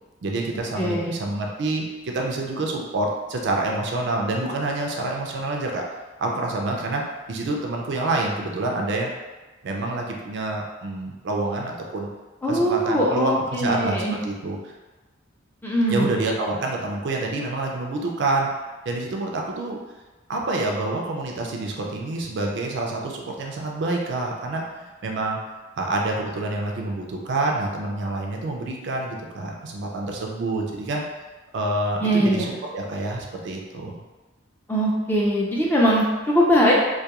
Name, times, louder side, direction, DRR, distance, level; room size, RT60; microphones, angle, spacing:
voice 1, 0.2-5.8 6.2-7.0 7.3-9.1 9.6-12.1 12.5-14.6 15.9-18.5 18.9-19.8 20.3-25.4 25.8-31.0 31.5-32.5 32.7-34.0, right 2 dB, 60° right, 0 dB, 0.4 m, -27 dB
voice 2, 0.8-1.2 12.4-14.2 15.6-16.2 32.0-32.5 34.7-36.7, equal, 10° left, -5 dB, 0.4 m, -21 dB
2.3 x 2.2 x 2.8 m, 1.2 s
head